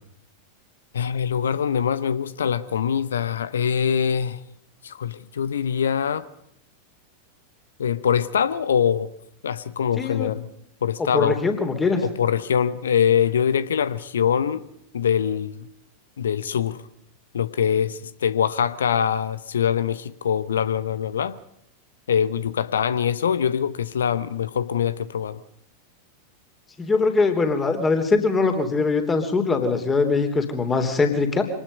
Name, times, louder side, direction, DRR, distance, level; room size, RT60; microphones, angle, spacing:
voice 1, 0.9-4.4 4.8-6.2 7.8-9.1 9.4-10.5 10.8-11.4 12.0-14.7 14.9-15.7 16.2-16.8 17.3-21.4 22.1-25.4, left 8 dB, 65° left, 0.8 m, -23 dB
voice 2, 10.0-10.3 11.0-12.0 26.8-31.4, left 4 dB, 15° left, 3.3 m, -22 dB
25.5 x 19.0 x 5.3 m
figure-of-eight pair, 90°, 0 cm